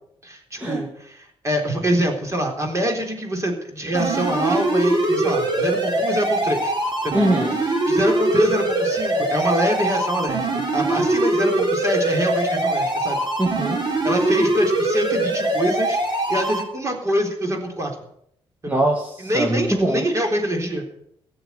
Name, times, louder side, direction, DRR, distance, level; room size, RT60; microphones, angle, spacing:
voice 1, 0.2-6.8 7.0-7.2 7.9-13.2 14.0-17.9 18.6-18.8 19.2-20.9, equal, 30° right, 3 dB, 3.8 m, -25 dB
sound 1, 3.9-16.6, right 2 dB, 45° right, 4.9 m, -22 dB
voice 2, 7.1-7.6 13.4-13.8 18.7-20.1, right 1 dB, 15° right, 2 dB, 1.9 m, -22 dB
17.0 x 7.1 x 9.8 m, 0.73 s
cardioid pair, 110°, 10 cm